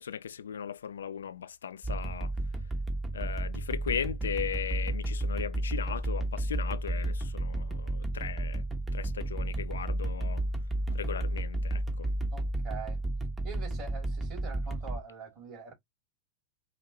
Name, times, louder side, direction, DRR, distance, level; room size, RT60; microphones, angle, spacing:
voice 1, 0.0-2.3 3.1-8.6 8.9-10.4 10.9-12.1, left 8 dB, 65° left, 0.3 m, -37 dB
sound 1, 1.8-15.0, right 1 dB, 15° right, 1.1 m, -32 dB
voice 2, 12.3-13.0 13.4-15.7, right 5 dB, 35° right, 2.9 m, -44 dB
5.1 x 2.7 x 2.9 m
figure-of-eight pair, 90°, 0 cm